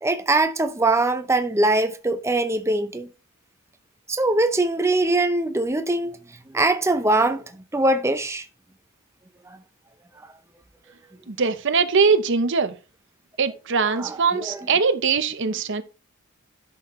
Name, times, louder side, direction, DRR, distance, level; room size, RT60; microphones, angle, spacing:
voice 1, 0.0-3.1 4.1-6.2 6.5-7.4 7.7-8.4 13.9-14.7, right 2 dB, 15° right, 0.7 m, -22 dB
voice 2, 11.3-12.7 13.4-15.8, right 5 dB, 55° right, 0.8 m, -21 dB
11.0 x 6.4 x 3.1 m
head